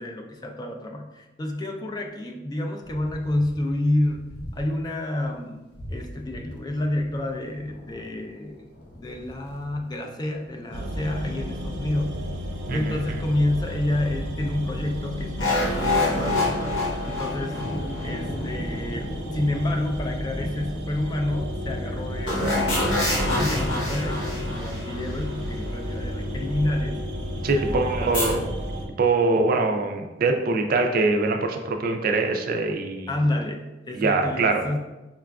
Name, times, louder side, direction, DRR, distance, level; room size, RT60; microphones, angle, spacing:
voice 1, 0.0-4.2 4.5-5.6 5.9-12.2 12.7-16.4 17.0-17.6 18.0-27.0 27.4-28.3 33.1-34.8, left 1 dB, 20° left, 2 dB, 0.3 m, -29 dB
sound 1, 2.8-4.9 5.2-5.4 5.7-20.5, equal, 60° left, 0.6 m, -40 dB
sound 2, 10.7-28.9, equal, 85° right, 0.7 m, -33 dB
sound 3, 15.4-18.9 22.3-25.6 28.1-28.4, left 2 dB, 90° left, 1.1 m, -26 dB
voice 2, 27.4-28.4 29.0-33.1 33.9-34.6, right 3 dB, 50° right, 5 dB, 0.4 m, -23 dB
5.5 x 2.4 x 2.3 m, 1.1 s
head